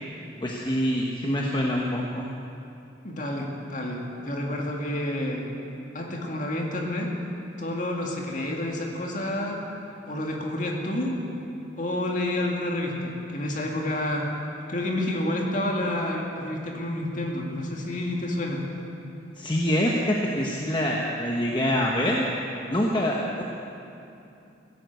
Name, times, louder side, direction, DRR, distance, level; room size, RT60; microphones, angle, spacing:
voice 1, 0.4-2.3 19.4-22.3 22.7-23.4, equal, 25° left, -2 dB, 1.1 m, -25 dB
voice 2, 3.0-5.5 5.9-7.1 7.6-9.6 10.1-11.1 11.8-14.3 14.7-18.6, left 1 dB, 45° left, 0 dB, 2.1 m, -29 dB
16.0 x 10.5 x 8.2 m, 2.7 s
head